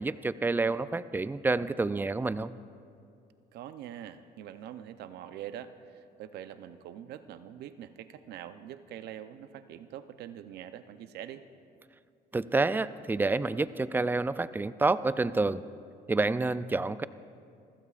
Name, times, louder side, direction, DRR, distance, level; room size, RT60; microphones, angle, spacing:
voice 1, 0.0-2.5 12.3-15.6 16.1-17.0, right 3 dB, 10° right, 15 dB, 0.3 m, -28 dB
voice 2, 3.5-11.4, right 10 dB, 75° right, 11 dB, 0.7 m, -44 dB
27.5 x 15.5 x 2.5 m, 2.4 s
cardioid pair, 110°, 17 cm